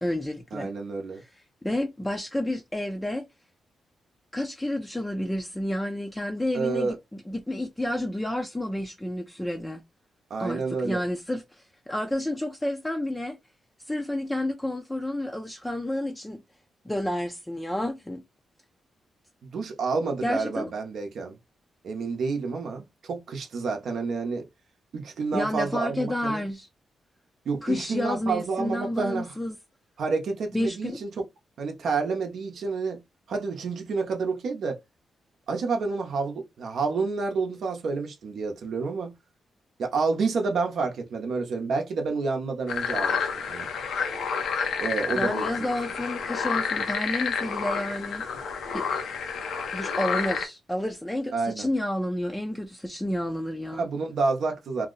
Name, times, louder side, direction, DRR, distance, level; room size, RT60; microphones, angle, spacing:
voice 1, 0.0-0.7 1.1-3.2 4.3-9.8 10.4-13.4 13.8-16.4 16.8-18.2 20.2-20.7 25.3-26.7 27.6-29.6 30.5-31.0 45.1-48.3 48.7-48.8 49.7-53.8, left 1 dB, 10° left, 0.4 m, -30 dB
voice 2, 0.5-1.2 6.5-7.0 10.3-11.0 19.4-21.4 21.8-24.5 24.9-26.4 27.5-29.4 30.0-31.2 31.6-33.0 33.3-34.8 35.5-39.1 39.8-43.7 44.8-45.5 51.3-51.7 53.8-54.9, right 4 dB, 70° right, 0.7 m, -29 dB
sound 1, 42.7-50.4, left 6 dB, 85° left, 0.7 m, -29 dB
2.7 x 2.0 x 3.7 m
cardioid pair, 115°, 0 cm